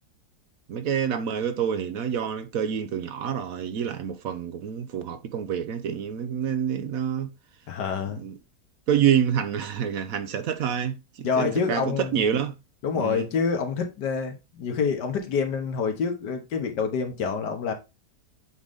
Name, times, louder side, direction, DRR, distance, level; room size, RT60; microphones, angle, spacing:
voice 1, 0.7-7.3 8.2-8.3 8.9-12.5 13.0-13.3, right 8 dB, 65° right, 1.1 m, -27 dB
voice 2, 7.7-8.2 11.2-12.2 12.8-17.7, left 5 dB, 90° left, 1.8 m, -27 dB
8.0 x 3.8 x 3.5 m
omnidirectional pair, 1.8 m